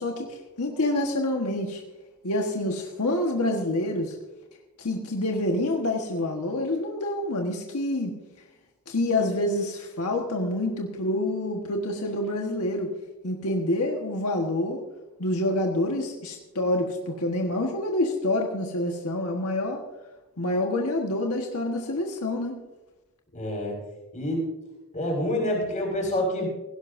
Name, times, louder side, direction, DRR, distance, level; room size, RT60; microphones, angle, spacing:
voice 1, 0.0-1.8 2.2-4.2 4.8-8.2 8.9-12.9 13.2-14.8 15.2-19.8 20.4-22.6, left 1 dB, 80° left, 1 dB, 1.4 m, -27 dB
voice 2, 23.3-23.8 24.1-24.4 24.9-26.5, left 1 dB, 35° left, -1 dB, 5.4 m, -27 dB
17.0 x 17.0 x 2.7 m, 1.1 s
head